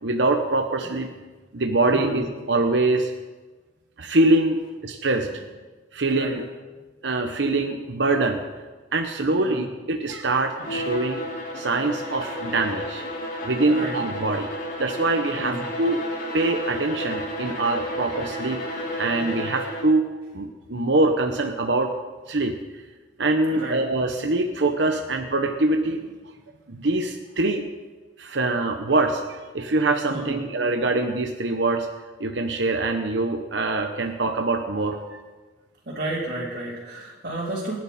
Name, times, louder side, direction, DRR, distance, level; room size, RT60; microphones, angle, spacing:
voice 1, 0.0-1.1 1.5-3.1 4.0-5.3 5.9-6.4 7.0-8.4 8.9-11.3 11.5-13.0 13.4-14.5 14.8-16.0 16.3-18.6 19.0-20.1 20.3-21.9 22.3-22.6 23.2-26.1 26.7-27.6 28.2-31.9 32.2-35.2, right 2 dB, 80° right, 4 dB, 1.1 m, -24 dB
voice 2, 9.3-9.6 10.6-10.8 13.7-14.0 15.3-15.6 23.5-23.8 30.1-30.4 35.9-37.8, right 1 dB, 55° right, -8 dB, 3.7 m, -31 dB
Bowed string instrument, 10.5-20.0, equal, 50° left, 3.2 m, -32 dB
28.5 x 11.0 x 4.4 m, 1.3 s
head